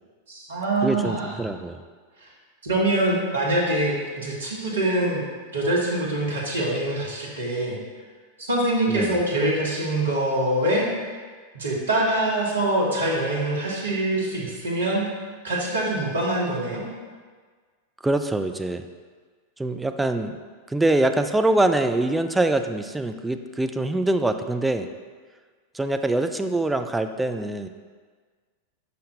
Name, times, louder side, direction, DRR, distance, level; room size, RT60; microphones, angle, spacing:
voice 1, 0.3-1.3 2.6-5.2 5.5-7.8 8.4-10.9 11.5-15.1 15.4-16.9, right 1 dB, 70° right, -3 dB, 1.4 m, -24 dB
voice 2, 0.8-1.8 8.9-9.2 18.0-18.9 19.6-20.4 20.7-24.9 25.7-27.7, right 2 dB, 5° right, 7 dB, 0.3 m, -24 dB
5.6 x 5.3 x 3.3 m, 1.5 s
figure-of-eight pair, 90°, 0 cm